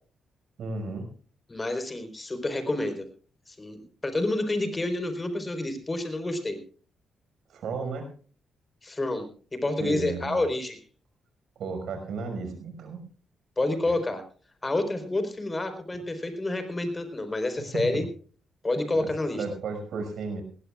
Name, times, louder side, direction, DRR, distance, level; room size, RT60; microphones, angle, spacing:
voice 1, 0.6-1.1 7.5-8.1 9.8-10.4 11.6-13.0 13.9-14.0 17.7-18.0 18.9-19.1 19.4-20.4, right 4 dB, 75° right, 6 dB, 5.7 m, -34 dB
voice 2, 1.5-3.1 3.5-6.6 8.8-10.8 13.6-14.2 14.6-18.0 18.6-19.4, left 2 dB, 25° left, 8 dB, 4.4 m, -29 dB
20.0 x 17.0 x 2.5 m, 0.40 s
supercardioid pair, 55°, 0 cm